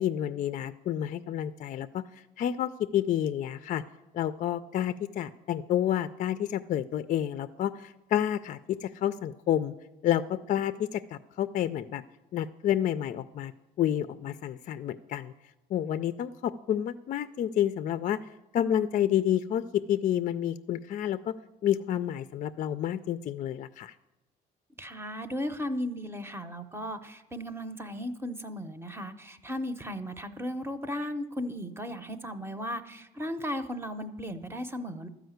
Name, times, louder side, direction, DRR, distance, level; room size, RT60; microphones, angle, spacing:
voice 1, 0.0-2.0 2.4-3.8 4.1-9.7 10.0-12.0 12.3-13.5 13.8-15.3 15.7-18.2 18.5-21.3 21.6-23.9, left 10 dB, 50° left, 11 dB, 0.4 m, -29 dB
voice 2, 24.8-35.1, equal, 15° right, 9 dB, 0.8 m, -36 dB
12.5 x 5.0 x 7.9 m, 1.0 s
cardioid pair, 110°, 17 cm